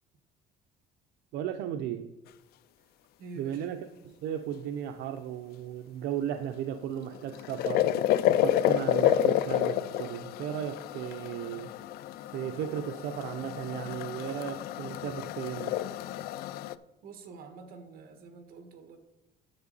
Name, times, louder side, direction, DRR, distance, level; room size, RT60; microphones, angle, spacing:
voice 1, 1.3-2.1 3.4-11.7 12.3-15.8, right 10 dB, 75° right, 7 dB, 0.6 m, -36 dB
voice 2, 3.2-3.7 17.0-19.0, right 4 dB, 60° right, 7 dB, 1.5 m, -47 dB
sound 1, 7.0-16.8, left 12 dB, 60° left, 0.4 m, -29 dB
10.0 x 7.3 x 4.0 m, 0.96 s
cardioid pair, 155°, 18 cm